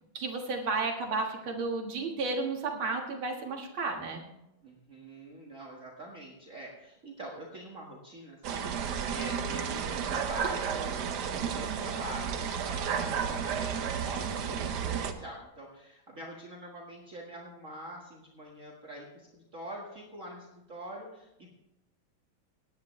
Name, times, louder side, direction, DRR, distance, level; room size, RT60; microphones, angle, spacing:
voice 1, 0.1-4.2, right 3 dB, 80° right, 2 dB, 2.4 m, -32 dB
voice 2, 4.6-21.5, right 1 dB, 40° right, -2 dB, 1.9 m, -45 dB
sound 1, 8.4-15.1, right 7 dB, 60° right, 1.4 m, -32 dB
18.0 x 10.5 x 3.2 m, 0.91 s
omnidirectional pair, 2.2 m